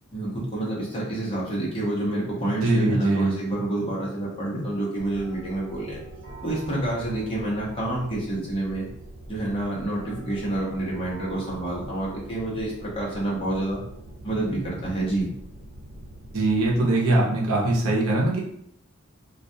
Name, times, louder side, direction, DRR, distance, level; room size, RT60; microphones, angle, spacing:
voice 1, 0.1-6.0 6.4-8.9 9.3-13.8 14.2-15.3, right 1 dB, 25° left, -5 dB, 0.8 m, -28 dB
voice 2, 2.6-3.3 16.3-18.4, right 2 dB, 85° right, -2 dB, 0.7 m, -22 dB
sound 1, 5.0-16.8, right 1 dB, 60° right, 1.2 m, -43 dB
2.3 x 2.2 x 2.7 m, 0.72 s
head